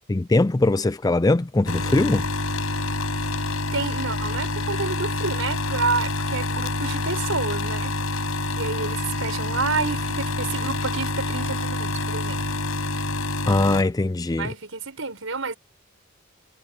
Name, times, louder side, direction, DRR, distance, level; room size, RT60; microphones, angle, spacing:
voice 1, 0.1-2.2 13.5-14.5, left 2 dB, 15° left, 0.4 m, -21 dB
sound 1, 1.7-13.8, left 2 dB, 75° left, 5.2 m, -27 dB
voice 2, 3.7-8.0 8.6-12.4 14.4-15.5, right 4 dB, 70° right, 5.5 m, -29 dB
head